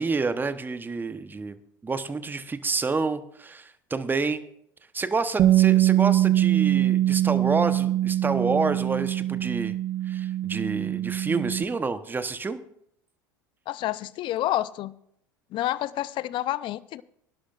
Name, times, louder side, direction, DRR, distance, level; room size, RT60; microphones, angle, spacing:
voice 1, 0.0-1.6 1.8-4.4 4.9-9.8 10.1-12.6, right 4 dB, 20° right, 11 dB, 1.0 m, -28 dB
Bass guitar, 5.4-11.6, right 13 dB, 40° right, 0.7 m, -23 dB
voice 2, 13.7-14.9 15.5-17.0, left 14 dB, 50° left, 18 dB, 0.6 m, -29 dB
24.0 x 11.5 x 2.5 m, 0.71 s
hypercardioid pair, 80°, 11 cm